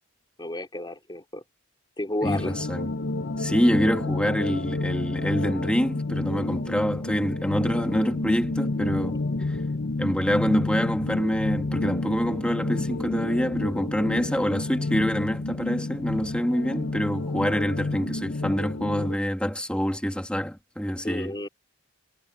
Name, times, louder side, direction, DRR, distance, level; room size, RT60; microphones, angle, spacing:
voice 1, 0.4-1.4 2.0-2.5 21.0-21.5, left 1 dB, 20° left, 3.1 m, -32 dB
sound 1, 2.2-19.2, left 2 dB, 55° left, 0.9 m, -30 dB
voice 2, 2.2-2.9 3.4-9.2 9.5-9.6 10.0-21.3, equal, 5° left, 2.2 m, -26 dB
head